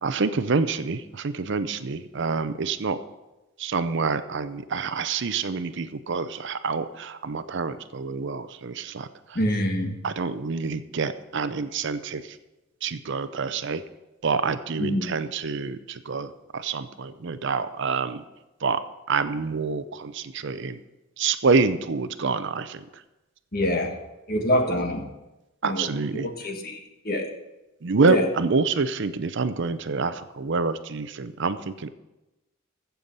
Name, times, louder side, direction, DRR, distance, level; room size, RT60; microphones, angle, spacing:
voice 1, 0.0-3.0 3.6-9.4 10.0-12.4 12.8-13.8 14.2-18.2 18.6-18.8 19.1-20.8 21.2-22.9 25.6-26.3 27.8-31.9, right 4 dB, 60° right, 12 dB, 0.6 m, -27 dB
voice 2, 9.3-9.9 14.8-15.1 23.5-23.9 24.3-25.0 25.6-25.9 26.1-26.8 27.0-27.3 28.1-28.3, left 1 dB, 45° left, 3 dB, 1.6 m, -25 dB
15.0 x 7.0 x 5.4 m, 1.0 s
head